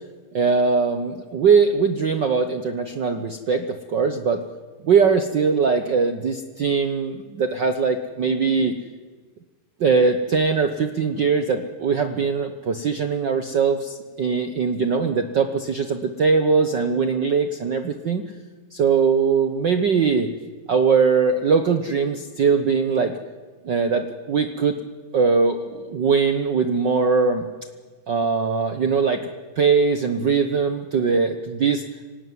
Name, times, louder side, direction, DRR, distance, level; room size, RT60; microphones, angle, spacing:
voice 1, 0.3-4.4 4.8-8.7 9.8-18.2 18.7-20.3 20.7-23.1 23.6-24.8 25.1-27.5 28.1-29.3 29.6-31.8, right 5 dB, 90° right, 8 dB, 0.9 m, -21 dB
26.5 x 18.0 x 9.4 m, 1.4 s
omnidirectional pair, 3.7 m